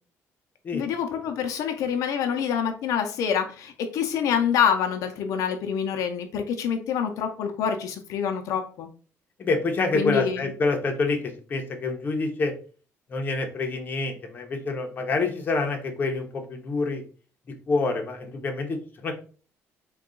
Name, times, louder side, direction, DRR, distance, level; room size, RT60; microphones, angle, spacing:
voice 1, 0.7-8.9 9.9-10.4, left 7 dB, 75° left, 5 dB, 0.5 m, -26 dB
voice 2, 9.4-11.2 11.5-12.5 13.1-17.0 17.7-19.1, left 3 dB, 35° left, 3 dB, 0.7 m, -27 dB
3.7 x 2.3 x 3.7 m, 0.39 s
cardioid pair, 145°, 6 cm